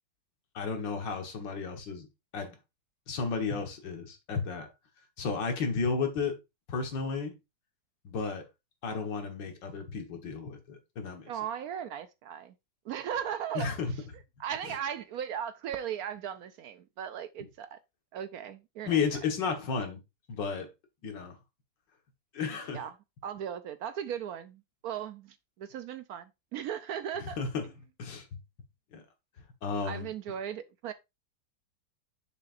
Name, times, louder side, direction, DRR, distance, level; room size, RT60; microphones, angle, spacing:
voice 1, 0.5-2.1 2.3-2.6 3.1-4.7 5.2-6.4 6.7-7.4 8.0-8.4 8.8-11.3 13.5-13.9 14.6-14.8 18.8-20.0 20.3-20.7 21.0-21.4 22.3-22.9 27.2-27.7 28.0-28.3 28.9-29.0 29.6-30.1, left 5 dB, 85° left, 2.1 m, -33 dB
voice 2, 11.3-12.5 12.8-14.0 14.4-17.8 18.1-19.0 22.7-22.9 23.2-27.4 29.8-30.9, right 9 dB, 70° right, 0.9 m, -37 dB
6.9 x 6.6 x 2.5 m
omnidirectional pair, 1.9 m